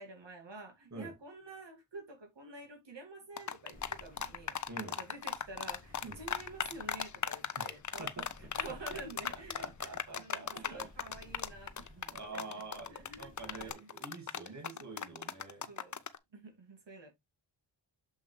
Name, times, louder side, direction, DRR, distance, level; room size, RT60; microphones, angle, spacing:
voice 1, 0.0-4.6 5.0-13.9 14.4-14.8 15.1-15.2 15.7-16.0 16.3-17.1, right 3 dB, 65° right, 2.3 m, -49 dB
sound 1, 3.4-16.2, left 7 dB, 40° left, 0.6 m, -37 dB
sound 2, 3.7-13.7, left 2 dB, 20° left, 2.0 m, -57 dB
voice 2, 4.7-5.0 6.0-6.2 7.6-7.7 8.0-8.2 9.6-10.9 12.1-15.7, right 3 dB, 40° right, 2.2 m, -46 dB
7.2 x 5.6 x 3.2 m
wide cardioid pair, 110°, 46 cm